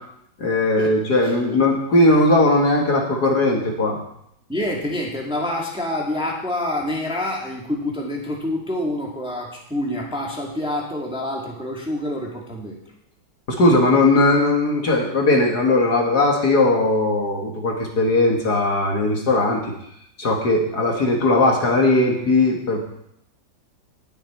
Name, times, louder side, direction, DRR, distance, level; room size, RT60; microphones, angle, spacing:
voice 1, 0.4-4.0 13.5-19.6 20.2-22.8, left 2 dB, 55° left, 0 dB, 2.1 m, -18 dB
voice 2, 1.2-1.6 4.5-12.8, left 1 dB, 5° right, -2 dB, 1.9 m, -27 dB
19.5 x 6.8 x 4.4 m, 0.76 s
omnidirectional pair, 2.1 m